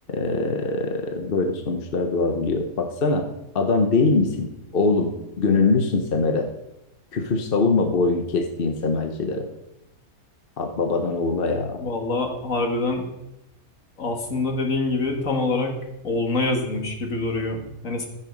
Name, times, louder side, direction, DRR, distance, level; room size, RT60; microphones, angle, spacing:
voice 1, 0.1-3.2 3.5-6.5 7.1-9.5 10.6-11.8, left 3 dB, 45° left, 4 dB, 1.0 m, -23 dB
voice 2, 11.8-13.0 14.0-15.8 16.0-18.1, left 2 dB, 65° left, 2 dB, 2.0 m, -25 dB
14.5 x 5.7 x 5.2 m, 0.90 s
omnidirectional pair, 1.5 m